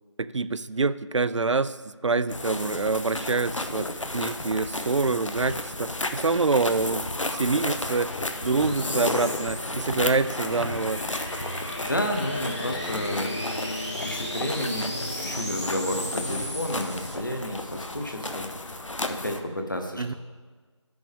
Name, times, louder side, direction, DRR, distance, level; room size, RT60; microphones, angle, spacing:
voice 1, 0.2-8.1 8.4-11.0 20.0-20.1, right 4 dB, 75° right, 15 dB, 0.4 m, -26 dB
sound 1, 2.3-19.4, left 2 dB, 90° left, 0.9 m, -33 dB
sound 2, 5.6-17.2, left 1 dB, 70° left, 1.9 m, -38 dB
sound 3, 9.7-16.6, left 1 dB, 25° left, 0.7 m, -38 dB
voice 2, 11.9-13.5 14.0-18.8 19.1-20.1, equal, 40° left, 4 dB, 1.0 m, -31 dB
11.0 x 6.2 x 3.5 m, 1.4 s
figure-of-eight pair, 180°, 16 cm